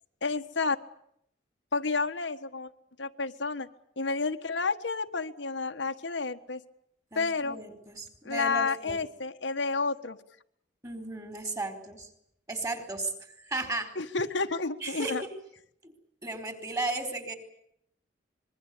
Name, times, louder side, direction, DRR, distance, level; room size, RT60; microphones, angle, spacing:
voice 1, 0.2-0.8 1.7-2.7 3.0-3.7 4.0-6.6 7.1-7.6 8.2-10.2 14.0-15.2, left 4 dB, 75° left, 6 dB, 1.5 m, -30 dB
voice 2, 7.1-9.0 10.8-12.1 12.5-13.9 14.8-15.3 15.8-15.9 16.2-17.4, right 2 dB, 20° right, 7 dB, 4.4 m, -35 dB
25.5 x 22.0 x 8.5 m, 0.73 s
head